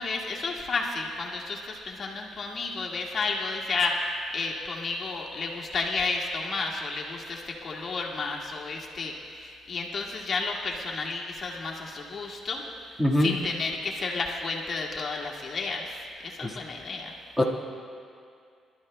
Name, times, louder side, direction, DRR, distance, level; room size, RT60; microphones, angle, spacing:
voice 1, 0.0-12.6 13.2-17.1, left 3 dB, 50° left, -2 dB, 1.7 m, -32 dB
voice 2, 13.0-13.3 16.4-16.5 17.4-17.5, left 1 dB, 10° right, -2 dB, 1.7 m, -22 dB
26.5 x 12.5 x 2.2 m, 2.4 s
cardioid pair, 90°, 0 cm